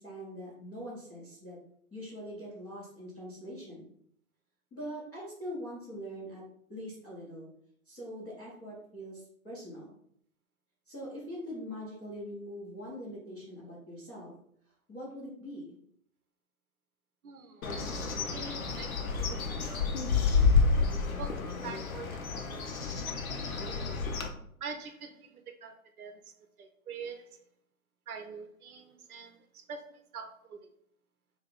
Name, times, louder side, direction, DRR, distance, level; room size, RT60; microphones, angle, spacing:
voice 1, 0.0-1.6 1.9-3.9 4.7-6.4 6.7-7.5 7.8-9.9 10.9-14.3 14.9-15.7, equal, 5° left, -11 dB, 0.4 m, -43 dB
voice 2, 17.2-17.6 18.3-19.8 20.1-20.3 21.2-22.7 23.1-23.6 24.6-25.7 26.0-26.2 26.6-27.4 28.1-29.4 29.7-30.6, right 5 dB, 80° right, 6 dB, 0.7 m, -45 dB
Bird, 17.6-24.3, left 4 dB, 70° left, 0.8 m, -29 dB
3.2 x 2.8 x 3.6 m, 0.67 s
figure-of-eight pair, 125°, 43 cm